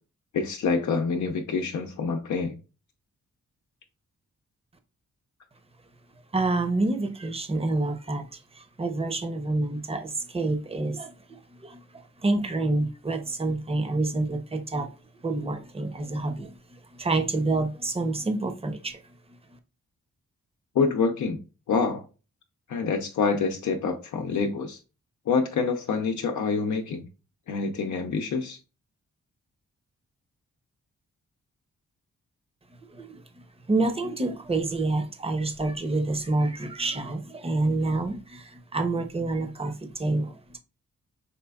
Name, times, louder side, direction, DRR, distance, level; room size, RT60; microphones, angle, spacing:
voice 1, 0.3-2.6 20.7-21.4 21.7-22.1 22.7-24.8 25.3-27.0 27.5-28.6, left 5 dB, 80° left, 0.6 m, -26 dB
voice 2, 6.3-11.1 11.6-14.9 15.2-16.6 16.9-19.0 32.9-33.2 33.7-40.6, right 2 dB, 20° right, 0.7 m, -28 dB
5.6 x 3.3 x 2.3 m
wide cardioid pair, 110°, 29 cm